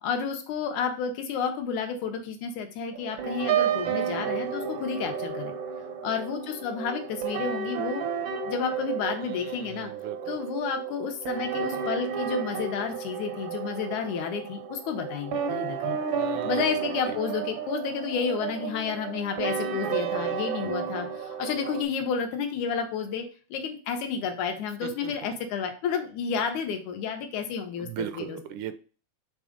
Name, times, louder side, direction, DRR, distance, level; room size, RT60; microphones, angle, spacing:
voice 1, 0.0-5.6 6.0-8.0 8.5-9.9 10.3-16.0 16.4-23.3 23.5-28.4, left 6 dB, 80° left, 5 dB, 2.5 m, -31 dB
sound 1, 2.9-21.8, right 7 dB, 70° right, 1.2 m, -32 dB
voice 2, 9.2-10.4 16.1-16.7 17.1-17.2 24.8-25.1 27.8-28.8, right 10 dB, 90° right, 11 dB, 2.2 m, -38 dB
6.1 x 3.9 x 5.0 m, 0.37 s
omnidirectional pair, 3.4 m